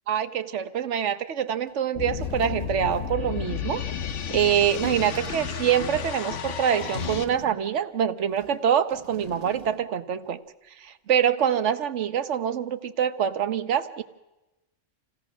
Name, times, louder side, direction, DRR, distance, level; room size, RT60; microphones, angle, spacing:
voice 1, 0.1-3.8 4.3-10.4 10.8-14.0, right 9 dB, 75° right, 11 dB, 1.2 m, -25 dB
sound 1, 1.7-1.8 2.1-3.3 4.6-6.0 6.8-7.9 8.3-10.0 10.2-10.3, right 6 dB, 35° right, 0.9 m, -43 dB
sound 2, 2.0-7.2, left 8 dB, 80° left, 1.2 m, -32 dB
28.0 x 16.0 x 6.2 m, 1.0 s
omnidirectional pair, 1.2 m